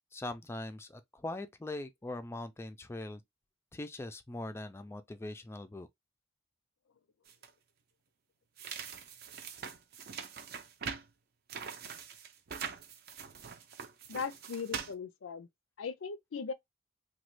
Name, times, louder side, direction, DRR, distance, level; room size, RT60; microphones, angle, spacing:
voice 1, 0.1-3.2 3.7-5.9, left 2 dB, 15° left, 0.3 m, -41 dB
sound 1, 7.3-7.5 8.6-11.1 11.5-14.9, right 7 dB, 55° right, 0.6 m, -43 dB
voice 2, 14.1-15.5 15.8-16.5, left 5 dB, 85° left, 0.5 m, -38 dB
3.0 x 2.2 x 3.1 m
head